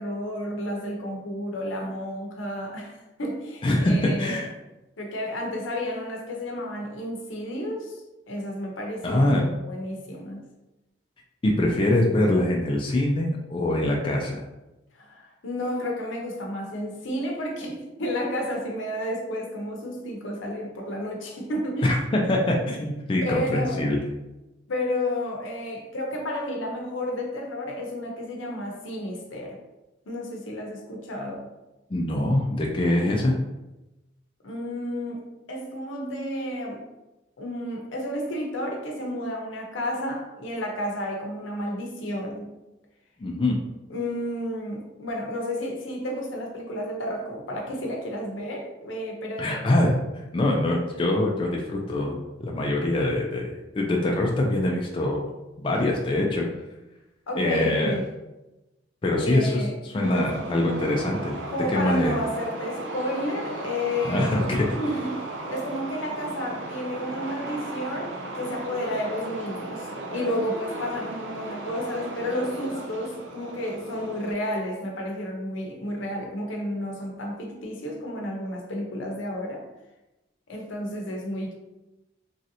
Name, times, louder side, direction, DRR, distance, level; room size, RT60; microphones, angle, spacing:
voice 1, 0.0-4.5 5.0-8.0 8.3-10.4 14.9-22.0 23.2-23.9 24.7-29.6 30.1-31.5 34.4-35.2 35.5-36.8 37.4-42.5 43.9-49.7 57.3-58.1 59.2-60.3 61.5-64.4 64.7-65.2 65.5-79.6 80.5-81.5, left 1 dB, 85° left, 0 dB, 0.7 m, -31 dB
voice 2, 3.6-3.9 4.2-4.5 9.0-9.4 11.4-14.4 21.8-24.0 31.9-33.3 43.2-43.6 49.4-50.0 50.3-55.2 55.6-56.4 57.4-58.0 59.0-61.4 61.7-62.1 64.0-64.7, left 1 dB, 25° left, 0 dB, 0.3 m, -24 dB
sound 1, 60.0-74.3, right 2 dB, 80° right, 0.5 m, -36 dB
3.1 x 2.6 x 2.7 m, 1.0 s
head